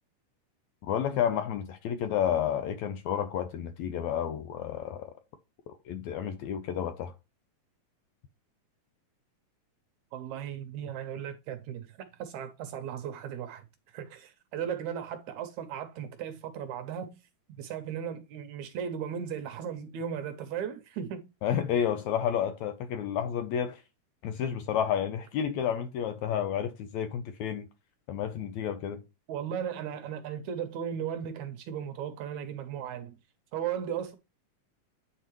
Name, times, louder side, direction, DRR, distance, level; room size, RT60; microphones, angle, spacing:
voice 1, 0.8-5.1 5.7-7.1 21.4-23.8 24.2-27.7 28.1-29.0, left 9 dB, 75° left, 1.8 m, -31 dB
voice 2, 10.1-13.6 13.9-17.2 17.5-21.3 29.3-33.2 33.5-34.2, right 8 dB, 75° right, 1.8 m, -36 dB
9.1 x 4.5 x 3.0 m
omnidirectional pair, 3.8 m